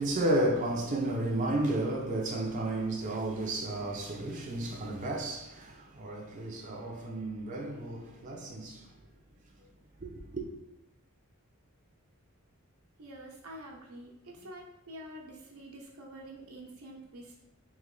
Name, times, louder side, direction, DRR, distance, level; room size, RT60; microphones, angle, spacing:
voice 1, 0.0-8.9 10.0-10.5, right 1 dB, 35° right, 0.5 m, -32 dB
voice 2, 13.0-17.4, right 1 dB, 90° right, 0.9 m, -47 dB
3.2 x 3.1 x 3.7 m
head